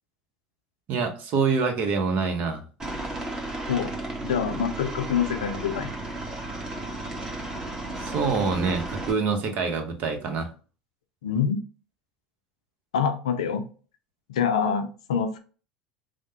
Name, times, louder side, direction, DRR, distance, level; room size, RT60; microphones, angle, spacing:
voice 1, 0.9-2.6 8.0-10.5, right 5 dB, 50° right, 5 dB, 0.8 m, -26 dB
Aircraft, 2.8-9.1, right 2 dB, 20° right, 1.2 m, -34 dB
voice 2, 4.2-5.9 11.2-11.6 12.9-13.6 14.3-15.4, left 7 dB, 80° left, 7 dB, 0.4 m, -26 dB
3.3 x 2.1 x 2.8 m, 0.37 s
hypercardioid pair, 80°, 3 cm